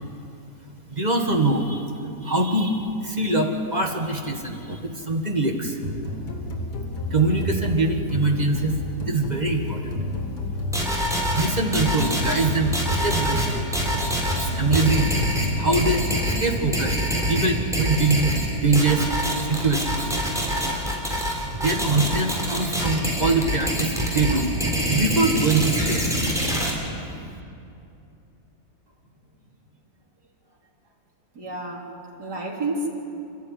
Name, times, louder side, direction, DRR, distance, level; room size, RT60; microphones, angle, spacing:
voice 1, 0.9-1.9 2.2-5.8 7.1-8.8 9.1-10.0 11.3-14.0 14.4-19.1 19.4-20.0 21.5-24.5 24.9-26.2, right 2 dB, 25° right, 2 dB, 1.9 m, -23 dB
sound 1, 5.8-16.8, left 1 dB, 90° left, 2.8 m, -31 dB
sound 2, 10.7-26.7, equal, ahead, 3.9 m, -25 dB
voice 2, 31.3-32.9, right 2 dB, 85° right, -3 dB, 3.9 m, -30 dB
28.5 x 13.0 x 9.5 m, 2.6 s
omnidirectional pair, 1.7 m